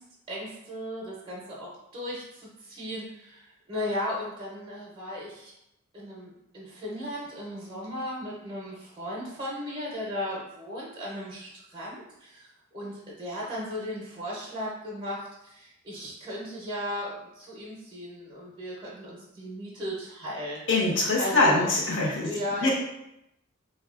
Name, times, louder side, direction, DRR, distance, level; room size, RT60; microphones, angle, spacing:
voice 1, 0.3-1.0 1.6-1.7 1.9-2.1 2.8-3.0 3.7-5.3 6.0-6.1 6.6-11.3 11.7-12.0 12.7-12.9 13.2-15.2 15.9-17.1 17.6-18.7 19.0-19.9 20.2-20.6 21.2-21.7 22.2-22.7, left 1 dB, 25° right, -5 dB, 0.6 m, -35 dB
voice 2, 20.7-22.3 22.6-22.7, left 2 dB, 60° left, -2 dB, 0.7 m, -23 dB
3.5 x 2.2 x 2.4 m, 0.83 s
head